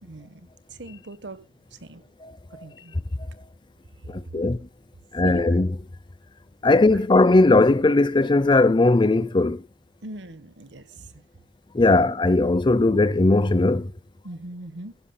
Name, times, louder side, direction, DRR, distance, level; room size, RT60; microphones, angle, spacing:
voice 1, 0.0-1.4 1.7-2.0 2.6-3.0 5.2-5.6 10.0-11.1 14.2-15.0, right 2 dB, 85° right, 1.2 m, -40 dB
voice 2, 2.2-2.6 4.1-4.6 5.1-5.7 6.6-9.6 11.7-13.9, left 2 dB, 25° left, 0.6 m, -19 dB
16.0 x 11.5 x 2.2 m
head